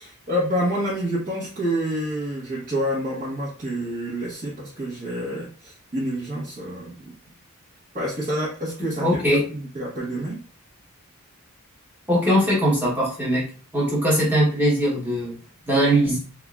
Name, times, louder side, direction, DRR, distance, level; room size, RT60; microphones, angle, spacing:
voice 1, 0.0-7.1 7.9-10.4, equal, 35° right, -9 dB, 1.2 m, -28 dB
voice 2, 9.0-9.4 12.1-13.5 13.7-15.3 15.7-16.2, equal, 10° right, -6 dB, 1.1 m, -20 dB
3.6 x 3.5 x 2.4 m, 0.40 s
head